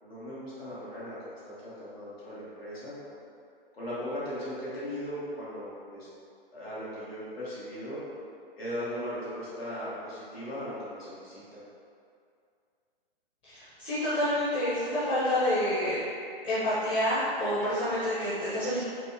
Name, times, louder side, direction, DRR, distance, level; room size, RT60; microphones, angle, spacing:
voice 1, 0.0-3.2 3.7-6.1 6.5-8.0 8.6-11.6, equal, 85° left, -9 dB, 1.2 m, -38 dB
voice 2, 13.5-16.0 16.4-18.8, left 1 dB, 20° left, -13 dB, 0.7 m, -28 dB
4.6 x 2.0 x 2.6 m, 2.4 s
hypercardioid pair, 130°, 29 cm